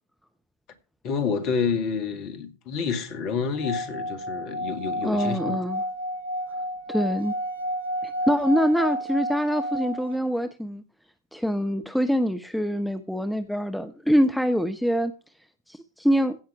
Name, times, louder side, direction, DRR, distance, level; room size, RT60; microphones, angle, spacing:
voice 1, 1.0-5.6, left 5 dB, 40° left, 1.9 m, -28 dB
Singing / Glass, 3.5-10.2, equal, 75° left, 1.4 m, -31 dB
voice 2, 5.0-5.8 6.9-7.3 8.0-10.8 11.3-15.1 15.7-16.4, equal, ahead, 0.8 m, -24 dB
15.5 x 5.9 x 4.9 m
figure-of-eight pair, 90°, 0 cm